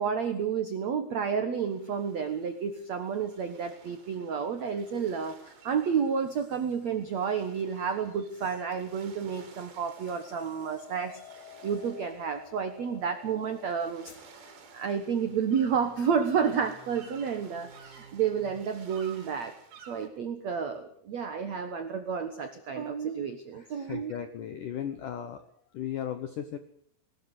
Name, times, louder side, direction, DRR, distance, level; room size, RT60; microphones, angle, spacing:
voice 1, 0.0-11.2 11.6-14.1 14.7-19.5 19.9-24.1, right 7 dB, 85° right, 8 dB, 1.5 m, -30 dB
sound 1, 1.6-20.1, right 5 dB, 70° right, 5.4 m, -54 dB
Hammer, 10.1-16.3, left 9 dB, 45° left, 5.7 m, -51 dB
voice 2, 23.5-25.4 25.7-26.6, left 9 dB, 80° left, 9 dB, 1.9 m, -36 dB
20.0 x 19.0 x 8.1 m, 0.64 s
omnidirectional pair, 5.5 m